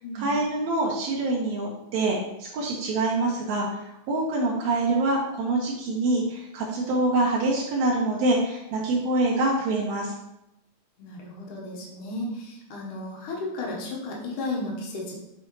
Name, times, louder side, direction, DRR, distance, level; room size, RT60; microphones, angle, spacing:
voice 1, 0.2-10.1, right 2 dB, 70° right, -4 dB, 1.8 m, -25 dB
voice 2, 11.0-15.2, left 2 dB, 70° left, -3 dB, 2.6 m, -34 dB
6.2 x 5.4 x 3.1 m, 0.85 s
omnidirectional pair, 4.0 m